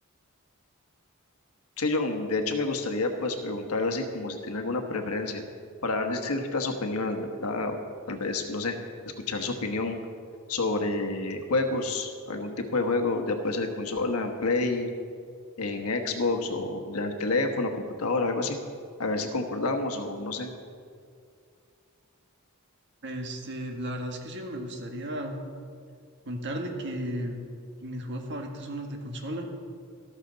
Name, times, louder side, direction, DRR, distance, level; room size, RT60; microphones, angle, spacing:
voice 1, 1.8-5.4 5.8-7.8 8.1-8.8 9.3-10.0 10.5-14.9 15.6-18.6 19.0-20.5, left 3 dB, 85° left, 5 dB, 1.3 m, -29 dB
voice 2, 23.0-25.4 26.2-27.4 27.8-29.5, equal, 55° right, 3 dB, 1.6 m, -34 dB
13.5 x 13.0 x 4.0 m, 2.3 s
head